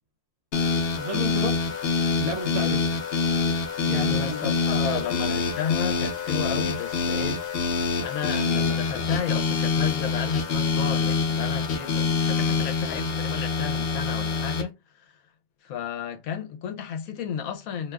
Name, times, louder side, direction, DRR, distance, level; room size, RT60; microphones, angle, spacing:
sound 1, 0.5-14.6, left 4 dB, 60° left, 0.7 m, -25 dB
voice 1, 0.9-1.6 2.2-3.0 3.9-5.0, equal, 55° right, 1.0 m, -32 dB
voice 2, 4.1-7.4 8.0-14.8 15.6-17.9, left 8 dB, 80° left, 1.1 m, -32 dB
2.7 x 2.3 x 3.3 m
omnidirectional pair, 1.5 m